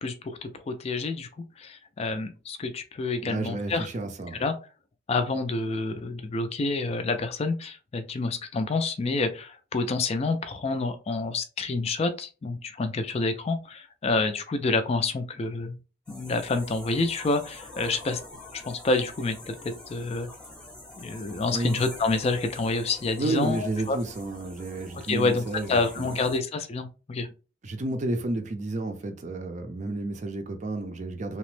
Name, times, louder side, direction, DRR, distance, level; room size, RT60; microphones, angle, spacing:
voice 1, 0.0-1.3 1.6-3.9 4.4-4.5 5.1-15.8 16.1-18.2 18.5-20.3 21.0-24.0 25.1-25.4 25.7-27.3, left 3 dB, 35° left, 0.3 m, -28 dB
voice 2, 3.2-4.4 21.5-21.8 23.2-26.2 27.6-31.4, right 2 dB, 40° right, 0.5 m, -31 dB
sound 1, 16.1-26.4, left 2 dB, 5° left, 0.8 m, -45 dB
2.9 x 2.0 x 3.1 m
head